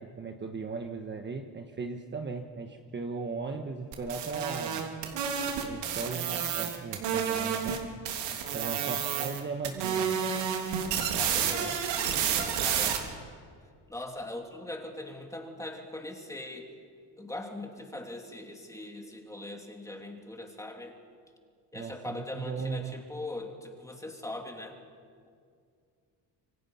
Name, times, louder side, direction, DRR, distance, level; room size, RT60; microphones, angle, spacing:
voice 1, 0.0-4.8 5.6-7.8 8.5-10.1 11.5-11.7 21.7-23.0, right 4 dB, 25° right, 4 dB, 1.3 m, -37 dB
sound 1, 3.9-7.8 8.0-9.4 9.6-13.0, right 8 dB, 85° right, 3.3 m, -30 dB
voice 2, 8.6-9.0 10.8-13.1 13.9-16.7 17.2-21.0 21.7-24.8, left 1 dB, 5° left, 2 dB, 3.0 m, -41 dB
27.5 x 24.5 x 5.7 m, 2.2 s
cardioid pair, 130°, 42 cm